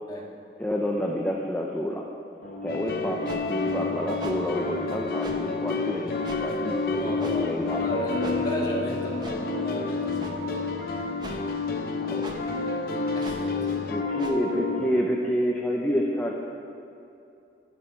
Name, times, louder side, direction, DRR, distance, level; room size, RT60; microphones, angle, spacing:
voice 1, 0.6-2.0 2.6-6.1 6.4-7.8 12.0-12.4 13.9-16.3, equal, 10° left, -2 dB, 0.7 m, -29 dB
Piano, 2.4-14.9, left 4 dB, 80° left, 2.0 m, -31 dB
sound 1, 2.7-14.0, left 2 dB, 55° left, 0.7 m, -33 dB
sound 2, 3.3-3.4 4.2-4.4 5.2-5.4 6.2-6.4 7.2-7.4 8.2-8.4 9.2-9.4 10.2-10.3 11.2-11.4 12.2-12.4 13.2-13.4 14.2-14.4, right 1 dB, 25° right, 0.9 m, -40 dB
voice 2, 7.0-10.3 13.2-13.7, equal, 25° left, -4 dB, 2.1 m, -34 dB
12.5 x 12.0 x 4.6 m, 2.7 s
head